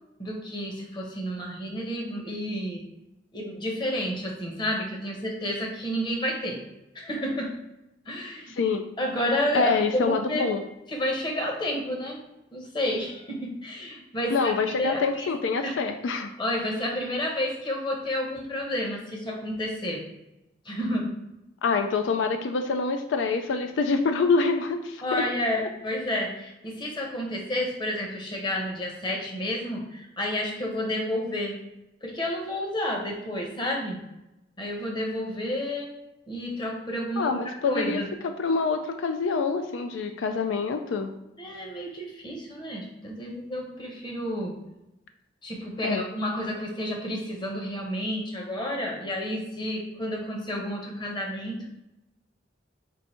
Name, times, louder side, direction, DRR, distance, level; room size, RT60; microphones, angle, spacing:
voice 1, 0.2-2.8 3.3-6.6 6.9-7.5 8.1-8.5 9.0-10.5 10.9-12.2 12.5-15.3 15.6-15.7 16.4-20.0 20.6-21.1 25.0-31.6 32.0-34.0 34.6-35.9 36.3-37.3 37.7-38.1 41.4-44.5 45.4-51.7, left 1 dB, 25° left, 0 dB, 0.9 m, -30 dB
voice 2, 9.5-10.6 14.3-16.3 21.6-25.0 37.2-38.0 38.4-41.1 45.8-46.1, left 4 dB, 85° left, 7 dB, 0.4 m, -26 dB
4.6 x 2.6 x 4.3 m, 0.91 s
head